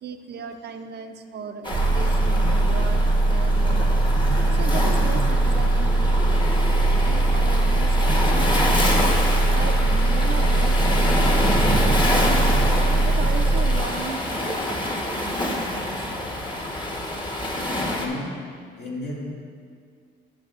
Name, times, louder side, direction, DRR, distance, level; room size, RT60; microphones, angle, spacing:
voice 1, 0.0-3.9 4.5-6.5 6.9-8.9 9.5-12.3 13.0-16.2, right 6 dB, 55° right, 6 dB, 0.5 m, -37 dB
Waves surf, 1.6-18.1, left 1 dB, 25° left, 1.1 m, -27 dB
sound 1, 1.7-13.8, right 2 dB, 75° right, 0.8 m, -20 dB
voice 2, 17.8-19.3, left 2 dB, 60° left, -4 dB, 2.0 m, -33 dB
12.0 x 6.3 x 2.4 m, 2.1 s
cardioid pair, 90°, 20 cm